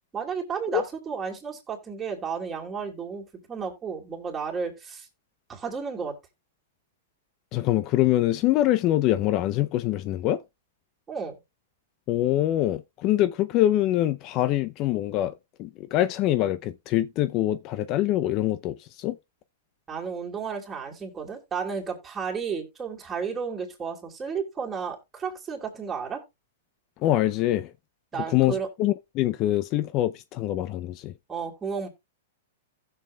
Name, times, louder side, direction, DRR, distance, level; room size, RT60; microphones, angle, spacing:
voice 1, 0.1-5.1 5.5-6.2 11.1-11.4 19.9-26.2 28.1-28.7 31.3-31.9, right 6 dB, 15° right, 3.0 m, -32 dB
voice 2, 7.5-10.4 12.1-15.3 15.6-19.2 27.0-27.7 28.3-31.1, left 14 dB, 40° left, 0.4 m, -24 dB
15.5 x 6.9 x 2.2 m
hypercardioid pair, 125°, 0 cm